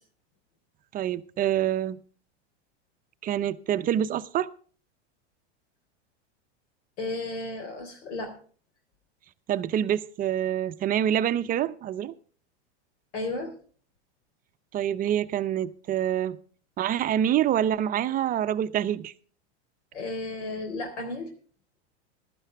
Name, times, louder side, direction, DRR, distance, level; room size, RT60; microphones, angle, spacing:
voice 1, 0.9-2.0 3.2-4.5 9.5-12.1 14.7-16.4 16.8-19.1, right 10 dB, 25° right, 0.6 m, -26 dB
voice 2, 7.0-8.3 13.1-13.5 19.9-21.3, left 2 dB, 80° left, 3.7 m, -33 dB
15.5 x 12.5 x 3.4 m
hypercardioid pair, 120°, 34 cm